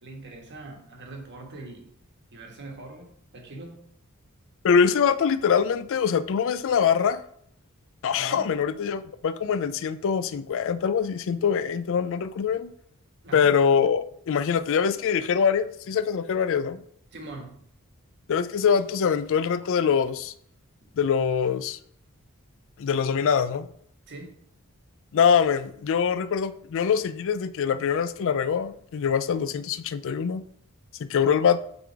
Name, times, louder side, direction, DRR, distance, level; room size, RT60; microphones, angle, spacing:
voice 1, 0.0-1.9 2.3-3.8 8.1-8.6 13.2-13.5 17.1-17.6 20.8-20.9 24.1-24.4, right 2 dB, 55° right, 1.4 m, -42 dB
voice 2, 4.6-7.2 8.0-12.7 13.3-16.8 18.3-20.3 21.0-21.8 22.8-23.7 25.1-30.4 31.0-31.6, left 7 dB, 60° left, 0.4 m, -24 dB
6.9 x 3.9 x 4.6 m
head